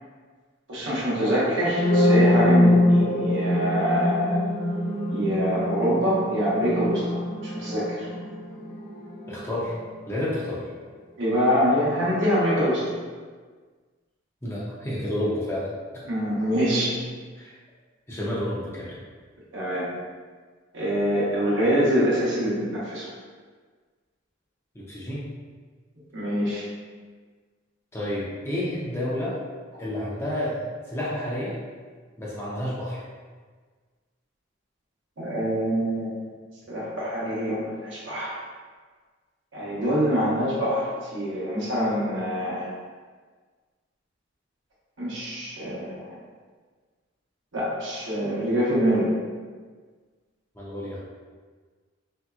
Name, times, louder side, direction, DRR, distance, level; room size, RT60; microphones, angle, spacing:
voice 1, 0.7-4.4 5.1-7.0 7.5-8.1 11.2-12.8 16.1-16.9 19.5-19.9 20.7-23.1 26.1-26.6 35.2-36.1 36.7-38.3 39.5-42.7 45.0-46.1 47.5-49.1, equal, 70° right, -8 dB, 0.9 m, -25 dB
sound 1, 1.6-9.4, left 1 dB, 60° left, 0.7 m, -23 dB
voice 2, 9.3-9.8 10.1-10.7 14.4-15.7 17.4-17.5 18.1-19.0 24.7-25.3 27.9-29.4 29.8-31.6 32.2-33.1 50.6-51.0, left 1 dB, 15° left, -7 dB, 0.5 m, -30 dB
3.1 x 2.7 x 2.3 m, 1.5 s
head